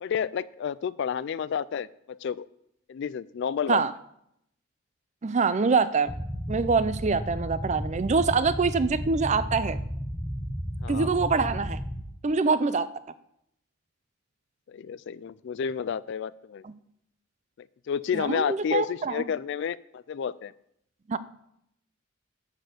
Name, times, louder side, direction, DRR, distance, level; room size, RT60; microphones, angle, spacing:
voice 1, 0.0-2.5 2.9-3.8 10.8-11.1 14.7-16.6 17.6-20.5, left 7 dB, 55° left, 19 dB, 0.3 m, -31 dB
voice 2, 5.2-6.1 6.5-9.8 10.9-11.8 12.2-12.9 16.6-16.7 18.1-19.2 21.1-21.2, right 4 dB, 35° right, 14 dB, 0.4 m, -25 dB
sound 1, 6.1-12.0, equal, 5° left, 0.7 m, -33 dB
11.5 x 4.3 x 7.9 m, 0.76 s
head